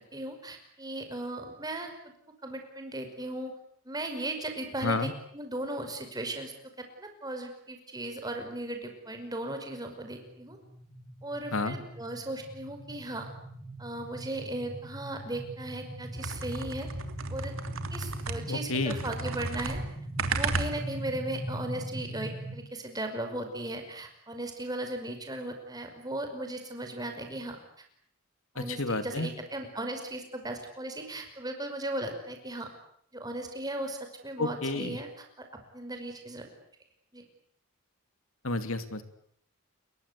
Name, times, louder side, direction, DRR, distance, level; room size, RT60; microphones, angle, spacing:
voice 1, 0.0-2.1 2.4-3.5 3.9-10.6 11.2-13.3 13.8-16.9 17.3-17.5 17.9-19.8 20.3-27.6 28.5-32.7 33.1-35.5 35.7-36.5 37.1-37.2, right 1 dB, 20° right, 5 dB, 5.5 m, -37 dB
sound 1, 10.1-22.5, right 1 dB, ahead, 6.6 m, -41 dB
sound 2, 16.1-18.6 18.9-21.1, right 3 dB, 65° right, 2.9 m, -34 dB
voice 2, 18.5-19.0 28.6-29.3 34.4-35.0 38.4-39.0, left 2 dB, 70° left, 11 dB, 2.7 m, -30 dB
30.0 x 22.5 x 8.4 m, 0.68 s
head